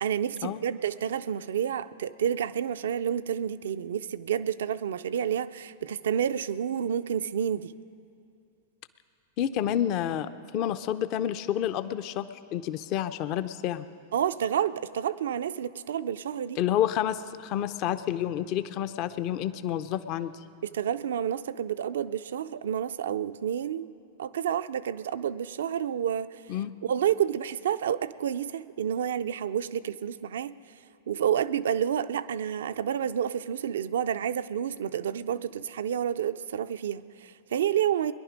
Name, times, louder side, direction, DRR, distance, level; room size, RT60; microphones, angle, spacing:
voice 1, 0.0-7.7 14.1-16.6 20.6-23.9 24.2-26.4 26.8-30.5 31.1-38.1, right 9 dB, 75° right, 14 dB, 0.4 m, -29 dB
voice 2, 9.4-13.8 16.6-20.3 26.5-26.7, left 11 dB, 45° left, 12 dB, 0.5 m, -29 dB
21.0 x 11.0 x 5.1 m, 2.5 s
hypercardioid pair, 110°, 0 cm